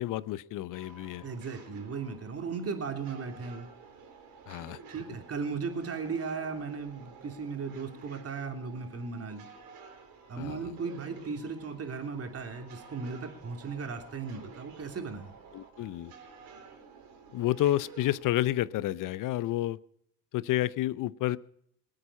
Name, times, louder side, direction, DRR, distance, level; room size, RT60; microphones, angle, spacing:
voice 1, 0.0-1.3 4.5-4.8 10.4-10.6 15.5-16.1 17.3-19.8 20.3-21.4, left 14 dB, 55° left, 19 dB, 0.8 m, -30 dB
sound 1, 0.7-18.6, right 5 dB, 65° right, 3.9 m, -52 dB
voice 2, 1.2-3.7 4.9-9.5 10.3-15.3, right 5 dB, 40° right, 4 dB, 3.2 m, -36 dB
21.5 x 8.9 x 5.6 m, 0.68 s
hypercardioid pair, 65°, 39 cm